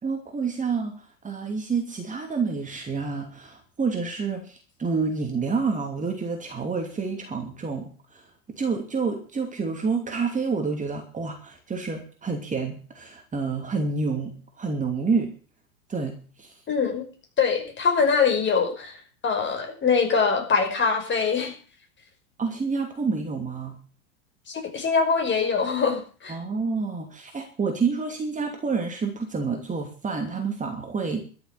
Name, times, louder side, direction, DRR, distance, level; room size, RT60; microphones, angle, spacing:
voice 1, 0.0-8.3 8.5-15.3 15.9-16.6 22.4-23.8 26.3-31.2, right 4 dB, 20° right, 3 dB, 2.8 m, -28 dB
voice 2, 16.7-17.0 17.4-19.0 19.2-21.5 24.5-26.4, left 5 dB, 25° left, 4 dB, 5.5 m, -23 dB
13.0 x 7.3 x 9.8 m, 0.40 s
hypercardioid pair, 95°, 41 cm